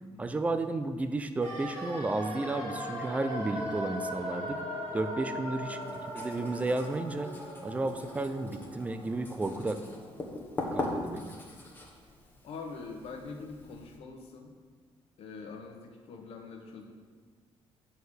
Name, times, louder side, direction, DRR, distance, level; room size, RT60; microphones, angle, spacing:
voice 1, 0.2-4.6 4.9-5.8 6.1-7.3 7.6-9.8 10.7-11.3, right 2 dB, 15° right, 9 dB, 0.4 m, -32 dB
sound 1, 1.4-11.3 11.6-11.7, equal, 55° right, 2.8 m, -40 dB
Writing, 5.8-14.0, left 2 dB, 20° left, 1.2 m, -41 dB
voice 2, 12.4-14.5 15.2-16.9, left 4 dB, 70° left, 2 dB, 1.3 m, -44 dB
9.0 x 4.6 x 6.4 m, 1.5 s
cardioid pair, 150°, 10 cm